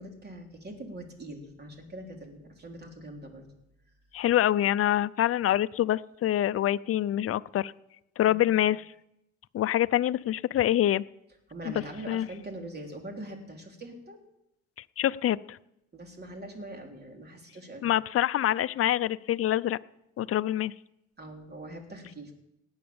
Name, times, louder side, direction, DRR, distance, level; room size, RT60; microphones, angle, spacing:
voice 1, 0.0-3.5 8.3-8.4 11.5-14.2 15.9-17.9 21.2-22.3, right 1 dB, 35° right, 3 dB, 3.4 m, -42 dB
voice 2, 4.1-7.7 8.2-8.8 9.5-11.0 11.6-11.7 12.1-12.3 15.0-15.6 17.8-19.8 20.2-20.7, left 12 dB, 50° left, 15 dB, 0.5 m, -25 dB
18.0 x 8.8 x 7.0 m, 0.85 s
cardioid pair, 90°, 30 cm